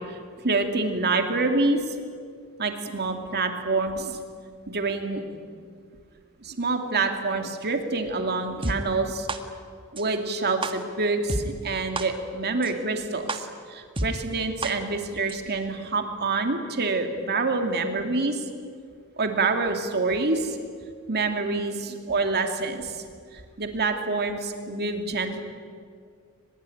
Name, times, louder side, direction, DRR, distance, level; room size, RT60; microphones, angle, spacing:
voice 1, 0.4-1.9 2.6-4.2 4.7-5.2 6.4-9.3 9.9-18.4 19.2-20.6 21.1-23.0 23.6-25.4, right 3 dB, 50° right, 5 dB, 2.6 m, -26 dB
sound 1, 8.6-8.7 9.3-9.4 10.0-10.1 10.6-10.7 11.3-11.4 12.0-12.1 12.6-12.7 13.3-13.4 14.0-14.1 14.6-14.7 15.3-15.4, right 2 dB, 25° right, 1.6 m, -28 dB
23.0 x 21.0 x 10.0 m, 2.1 s
head